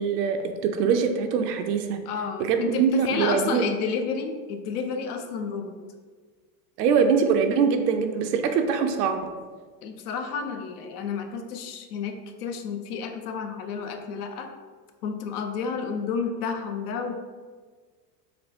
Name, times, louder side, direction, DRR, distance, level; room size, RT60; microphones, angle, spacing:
voice 1, 0.0-2.0 2.4-3.7 6.8-9.2, right 6 dB, 75° right, 6 dB, 0.6 m, -23 dB
voice 2, 2.1-5.8 9.8-14.5 15.0-17.1, left 5 dB, 65° left, 5 dB, 0.6 m, -31 dB
3.8 x 2.2 x 3.4 m, 1.5 s
hypercardioid pair, 105°, 48 cm